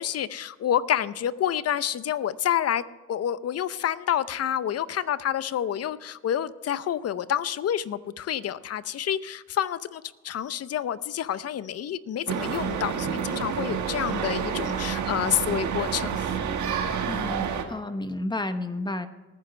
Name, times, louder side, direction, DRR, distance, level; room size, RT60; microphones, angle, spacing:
voice 1, 0.0-2.8 3.1-16.3, left 10 dB, 55° left, 16 dB, 0.7 m, -28 dB
sound 1, 12.3-17.6, right 7 dB, 70° right, 1.6 m, -29 dB
voice 2, 17.1-19.1, left 2 dB, 15° left, 9 dB, 1.0 m, -31 dB
19.0 x 9.4 x 3.3 m, 1.3 s
cardioid pair, 90°, 30 cm